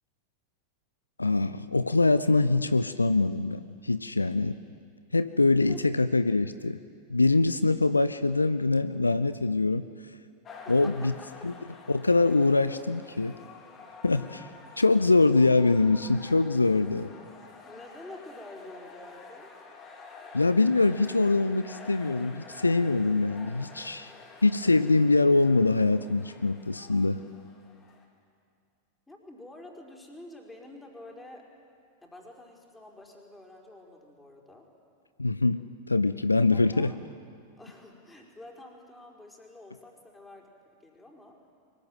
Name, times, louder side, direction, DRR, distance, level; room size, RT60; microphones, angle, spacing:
voice 1, 1.2-4.6 5.1-6.8 7.1-9.8 10.7-11.1 11.4-11.5 11.9-13.4 14.0-14.5 14.8-17.1 20.3-24.1 24.4-27.2 35.2-35.6 35.9-36.9, left 3 dB, 80° left, 13 dB, 0.6 m, -23 dB
sound 1, 10.4-28.1, left 4 dB, 25° left, 3.8 m, -49 dB
voice 2, 10.6-11.5 17.6-19.5 29.1-31.5 32.0-34.7 36.5-37.0 37.6-40.5 40.8-41.4, left 2 dB, 10° left, 0 dB, 4.7 m, -48 dB
23.5 x 20.5 x 9.2 m, 2.2 s
figure-of-eight pair, 90°, 0 cm